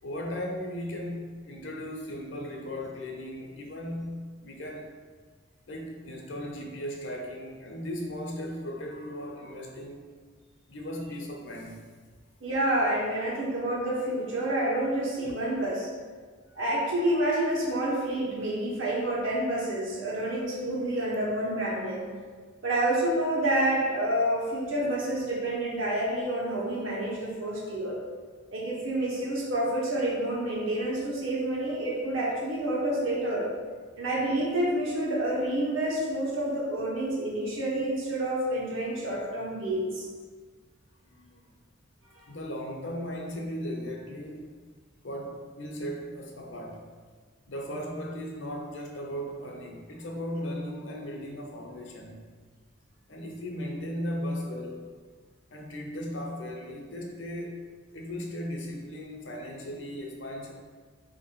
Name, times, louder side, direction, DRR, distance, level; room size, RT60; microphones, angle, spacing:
voice 1, 0.0-4.9 5.7-10.0 10.7-11.8 41.0-41.6 42.3-44.5 45.0-46.9 47.5-52.3 53.1-54.9 55.5-57.6 57.9-60.5, equal, 65° left, 1 dB, 0.7 m, -37 dB
voice 2, 12.4-15.9 16.5-22.1 22.6-28.0 28.5-33.5 34.0-40.1 42.1-42.2, right 1 dB, 80° right, -5 dB, 1.2 m, -28 dB
3.8 x 2.9 x 4.5 m, 1.5 s
head